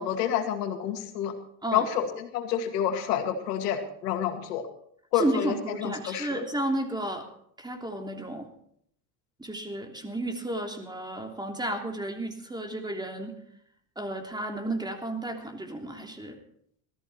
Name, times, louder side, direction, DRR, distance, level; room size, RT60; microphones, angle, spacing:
voice 1, 0.0-1.4 1.7-4.6 5.1-6.4, left 9 dB, 85° left, 6 dB, 2.2 m, -29 dB
voice 2, 5.1-7.3 7.6-8.5 9.4-13.4 14.0-16.4, right 1 dB, 10° right, 3 dB, 3.2 m, -32 dB
18.5 x 14.0 x 4.4 m, 0.67 s
supercardioid pair, 85°, 46 cm